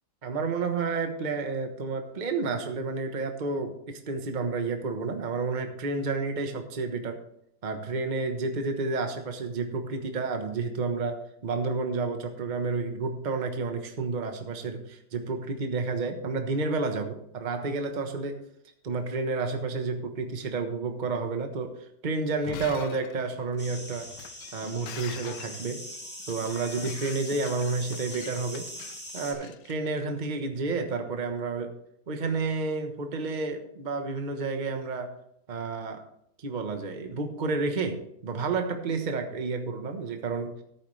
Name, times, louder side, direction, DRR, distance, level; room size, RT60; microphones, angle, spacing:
voice 1, 0.2-7.2 7.6-18.4 18.8-21.7 22.0-24.1 24.5-25.8 26.3-28.7 29.1-31.7 32.1-35.1 35.5-36.0 36.4-40.5, right 4 dB, 30° right, 5 dB, 1.1 m, -30 dB
Shatter, 22.3-30.3, left 10 dB, 70° left, 1.3 m, -45 dB
sound 1, 23.6-29.3, equal, 5° left, 1.9 m, -42 dB
14.5 x 8.8 x 3.3 m, 0.73 s
omnidirectional pair, 2.0 m